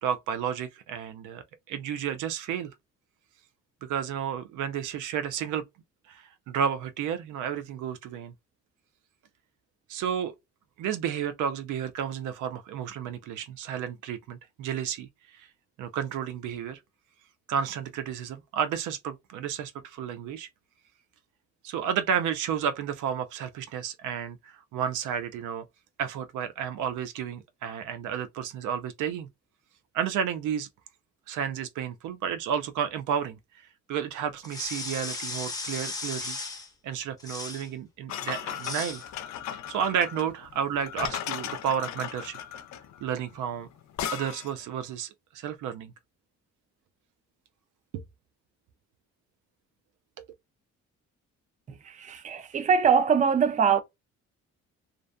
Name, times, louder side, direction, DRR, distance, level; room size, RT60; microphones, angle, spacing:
voice 1, 0.0-2.7 3.8-5.6 6.1-8.3 9.9-10.3 10.8-15.1 15.3-15.5 15.8-16.8 17.5-20.5 21.6-25.7 26.0-29.3 29.9-30.7 31.3-33.4 33.9-36.4 36.8-39.0 39.7-42.4 43.0-43.7 44.1-45.9 47.9-48.0 50.2-50.3, right 8 dB, 80° right, 0.5 m, -31 dB
sound 1, 34.4-36.7 37.2-37.7 38.5-39.0, left 3 dB, 10° left, 0.8 m, -36 dB
sound 2, 38.1-44.6, left 10 dB, 65° left, 0.4 m, -36 dB
voice 2, 51.7-53.8, right 6 dB, 25° right, 0.4 m, -23 dB
2.5 x 2.2 x 2.4 m
cardioid pair, 90°, 30 cm